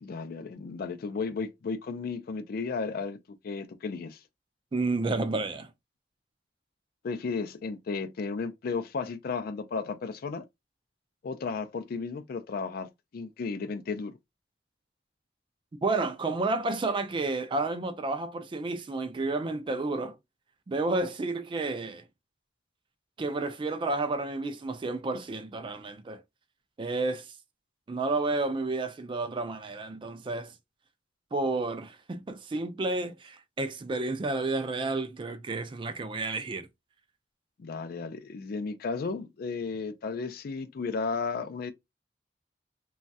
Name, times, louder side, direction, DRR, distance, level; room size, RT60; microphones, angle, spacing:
voice 1, 0.0-4.2 7.0-10.4 11.2-14.2 37.6-41.7, left 4 dB, 55° left, 0.4 m, -34 dB
voice 2, 4.7-5.7 15.8-20.2 20.7-22.0 23.2-26.2 26.8-27.3 27.9-30.5 31.3-36.7, right 3 dB, 30° right, 0.3 m, -31 dB
3.0 x 2.3 x 2.6 m
head